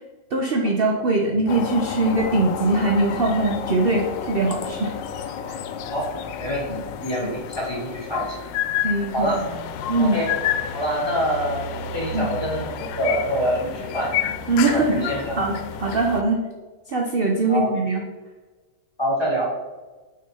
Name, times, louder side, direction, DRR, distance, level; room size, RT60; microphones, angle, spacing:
voice 1, 0.3-4.9 5.5-5.6 6.7-6.8 8.8-9.3 9.9-10.2 12.1-12.3 14.5-15.5 15.8-16.4 16.9-18.0, right 2 dB, 50° right, 1 dB, 0.7 m, -22 dB
sound 1, 1.5-16.2, left 8 dB, 90° left, 1.3 m, -30 dB
voice 2, 6.4-8.4 9.1-9.4 10.0-10.3 10.7-14.1 14.7-15.5 17.5-17.7 19.0-19.5, equal, 15° left, -6 dB, 2.3 m, -26 dB
6.2 x 4.4 x 5.5 m, 1.3 s
omnidirectional pair, 1.9 m